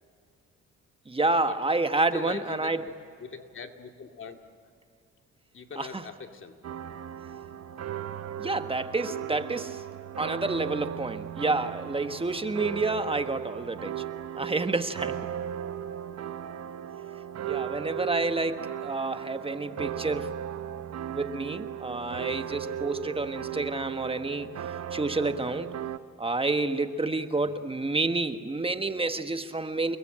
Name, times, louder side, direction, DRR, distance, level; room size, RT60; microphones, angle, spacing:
voice 1, 1.1-2.8 5.8-6.0 8.4-9.8 10.2-14.0 14.4-15.2 17.4-20.3 21.1-24.6 24.9-25.7 26.2-30.0, right 3 dB, 20° right, 9 dB, 1.5 m, -29 dB
voice 2, 2.1-2.9 3.2-4.4 5.5-6.6 16.1-16.2 27.3-27.4, left 5 dB, 40° left, 5 dB, 2.2 m, -41 dB
sound 1, 6.6-26.0, right 10 dB, 55° right, 0.9 m, -37 dB
30.0 x 21.5 x 8.9 m, 2.3 s
cardioid pair, 90°, 30 cm